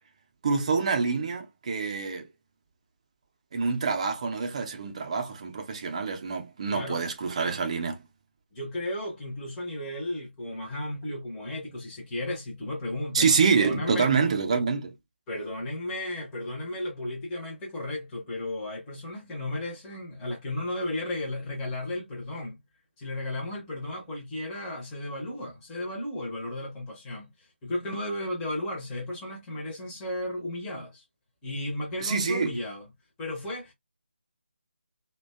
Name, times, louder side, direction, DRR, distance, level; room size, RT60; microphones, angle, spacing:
voice 1, 0.4-2.3 3.5-8.0 13.1-14.9 32.0-32.5, right 5 dB, 35° right, 0.5 m, -26 dB
voice 2, 6.7-7.0 8.5-14.1 15.3-22.6 23.0-31.0 31.4-32.9 33.2-33.7, left 1 dB, 10° left, 0.6 m, -34 dB
2.5 x 2.2 x 2.2 m
figure-of-eight pair, 160°, 6 cm